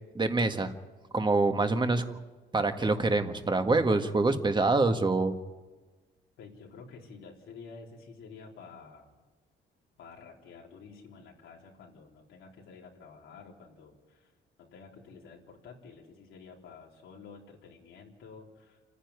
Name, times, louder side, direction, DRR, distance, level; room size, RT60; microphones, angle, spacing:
voice 1, 0.2-0.7 1.1-2.2 2.5-5.3, right 3 dB, 25° right, 7 dB, 1.7 m, -26 dB
voice 2, 6.4-9.1 10.0-14.3 14.6-18.8, left 5 dB, 85° left, -1 dB, 3.8 m, -50 dB
28.0 x 10.0 x 9.6 m, 1.3 s
cardioid pair, 90°, 20 cm